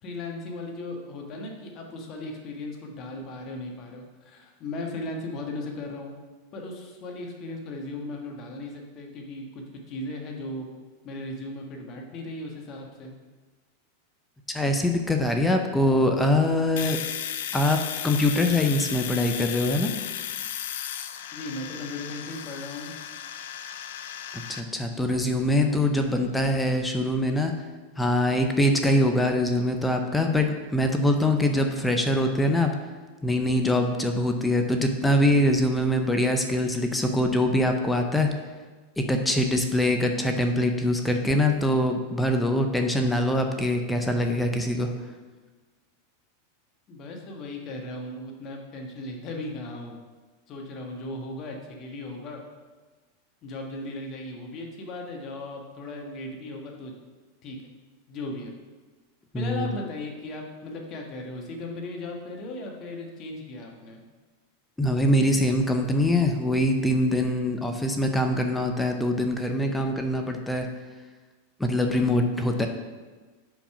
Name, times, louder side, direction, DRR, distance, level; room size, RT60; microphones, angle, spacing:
voice 1, 0.0-6.1 6.5-10.7 11.0-13.1 21.3-22.9 46.9-50.0 50.5-52.4 53.4-56.9 57.4-57.6 58.1-58.5 59.3-64.0, left 2 dB, 40° left, 1 dB, 1.4 m, -37 dB
voice 2, 14.5-17.0 17.5-17.8 18.0-19.9 24.3-27.5 28.0-32.7 33.2-38.3 39.0-44.9 59.3-59.7 64.8-70.7 71.6-72.7, left 1 dB, 10° left, 5 dB, 0.7 m, -23 dB
Domestic sounds home sounds, 16.8-24.6, left 10 dB, 70° left, 0.4 m, -35 dB
5.1 x 5.0 x 5.6 m, 1.3 s
hypercardioid pair, 110°, 0 cm